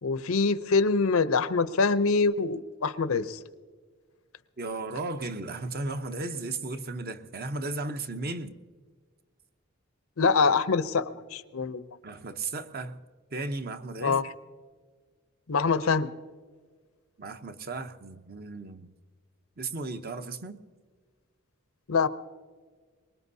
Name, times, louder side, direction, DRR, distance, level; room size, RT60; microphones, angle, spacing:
voice 1, 0.0-3.4 10.2-11.8 14.0-14.2 15.5-16.1 21.9-22.1, left 4 dB, 80° left, 0.7 m, -25 dB
voice 2, 4.6-8.6 12.0-13.0 13.3-14.2 17.2-18.9 19.6-20.6, right 3 dB, 45° right, 0.8 m, -35 dB
24.0 x 21.0 x 2.7 m
head